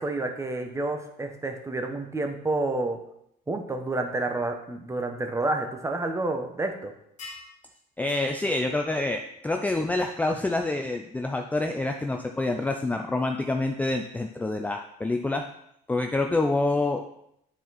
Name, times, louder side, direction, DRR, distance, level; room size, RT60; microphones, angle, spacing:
voice 1, 0.0-3.0 3.5-6.9, right 2 dB, 15° right, 5 dB, 1.0 m, -29 dB
sound 1, 7.2-7.5 8.1-8.3 10.0-10.1, left 3 dB, 45° left, 1.8 m, -42 dB
voice 2, 8.0-15.5 15.9-17.0, left 2 dB, 10° left, 4 dB, 0.4 m, -27 dB
9.1 x 4.3 x 4.1 m, 0.75 s
cardioid pair, 110°, 17 cm